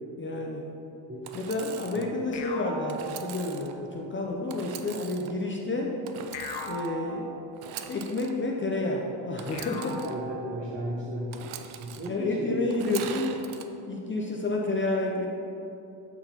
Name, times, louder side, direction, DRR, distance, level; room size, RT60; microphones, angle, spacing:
voice 1, 0.2-0.7 1.3-6.0 6.6-7.3 7.9-10.1 12.1-13.4 13.9-15.3, left 2 dB, 25° left, 0 dB, 0.5 m, -30 dB
Engine / Sawing, 1.2-2.1 2.9-3.7 4.5-5.3 6.0-6.9 7.5-8.3 9.4-10.1 11.3-12.1 12.7-13.6, right 9 dB, 80° right, 0.6 m, -42 dB
sound 1, 2.3-4.0 6.3-7.9 9.5-11.0, equal, 55° left, 0.9 m, -40 dB
voice 2, 10.0-11.3 11.8-12.6, right 1 dB, 30° right, -6 dB, 1.1 m, -34 dB
8.9 x 3.9 x 4.4 m, 2.9 s
cardioid pair, 125°, 48 cm